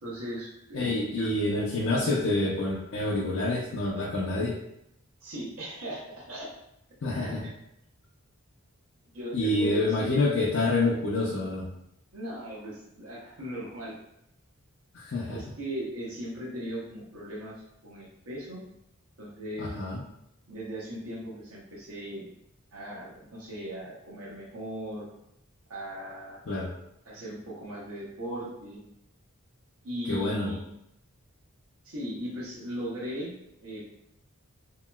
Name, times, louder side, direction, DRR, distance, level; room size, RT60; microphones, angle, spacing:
voice 1, 0.0-1.3 5.2-6.5 7.1-7.3 9.1-10.2 12.1-14.0 15.3-18.6 19.2-19.8 20.5-22.3 22.7-25.1 25.7-26.4 27.0-28.8 29.8-30.6 31.8-33.3 33.6-33.8, right 1 dB, 85° right, -6 dB, 0.9 m, -38 dB
voice 2, 0.7-4.6 7.0-7.5 9.3-11.7 14.9-15.4 19.6-20.0 26.5-26.7 30.1-30.6, left 2 dB, 55° left, -5 dB, 0.5 m, -27 dB
2.9 x 2.9 x 2.2 m, 0.80 s
head